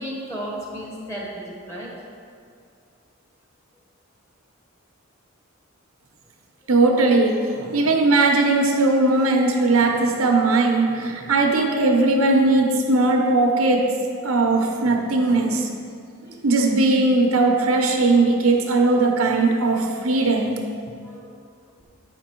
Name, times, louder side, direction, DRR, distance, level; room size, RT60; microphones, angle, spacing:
voice 1, 0.0-1.9 21.0-21.3, equal, 15° left, -4 dB, 1.3 m, -33 dB
voice 2, 6.7-13.9 14.2-15.7 16.4-20.6, right 2 dB, 85° right, 2 dB, 0.9 m, -19 dB
8.4 x 5.2 x 4.5 m, 2.3 s
head